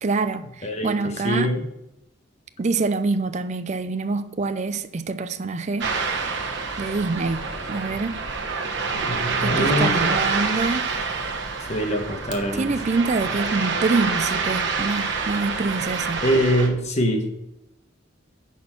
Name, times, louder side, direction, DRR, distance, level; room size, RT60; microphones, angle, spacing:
voice 1, 0.0-1.5 2.6-5.9 6.8-8.2 9.4-10.8 12.5-16.2, right 3 dB, 35° right, 0.4 m, -25 dB
voice 2, 0.6-1.6 8.9-10.0 11.7-12.7 16.2-17.3, equal, 35° left, 1.3 m, -24 dB
Ocean, 5.8-16.7, right 4 dB, 60° right, 1.2 m, -27 dB
10.0 x 4.3 x 5.8 m
head